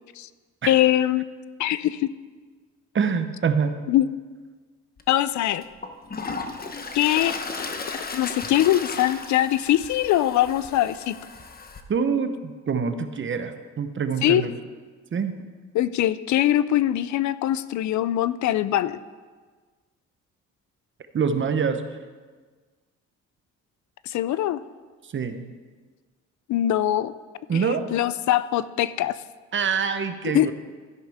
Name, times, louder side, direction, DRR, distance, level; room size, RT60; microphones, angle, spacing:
voice 1, 0.7-1.3 1.6-2.1 3.9-4.1 5.1-5.6 6.9-7.7 8.1-11.2 14.2-14.4 15.7-19.0 24.1-24.6 26.5-27.1 27.5-29.2 30.2-30.5, left 13 dB, 70° left, 16 dB, 0.5 m, -22 dB
voice 2, 2.9-3.8 11.9-14.5 15.1-15.3 21.1-21.8 25.1-25.5 27.5-27.8 29.5-30.5, right 6 dB, 40° right, 9 dB, 0.9 m, -25 dB
Toilet flush, 5.0-5.1 5.6-11.8, left 4 dB, 30° left, 1.0 m, -35 dB
12.5 x 10.5 x 3.5 m, 1.4 s
cardioid pair, 90°, 30 cm